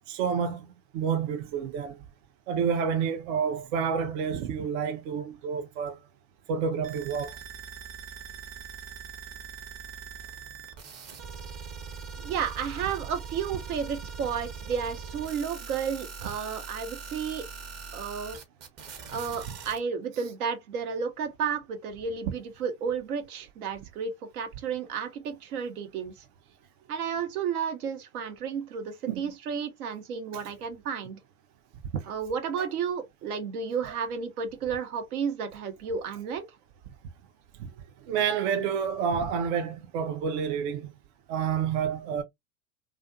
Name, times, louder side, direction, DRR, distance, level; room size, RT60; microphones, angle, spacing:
voice 1, 0.1-2.0 2.5-6.0 6.5-7.4 29.1-29.2 31.9-32.1 32.6-32.7 33.9-34.0 37.6-37.7 38.0-40.9 41.3-42.2, right 7 dB, 55° right, 0.5 m, -29 dB
sound 1, 6.8-19.8, right 6 dB, 35° right, 0.9 m, -42 dB
voice 2, 12.2-17.5 17.9-18.4 19.1-26.1 26.9-31.2 32.1-36.4, right 6 dB, 80° right, 0.9 m, -32 dB
2.5 x 2.4 x 2.5 m
hypercardioid pair, 95°, 43 cm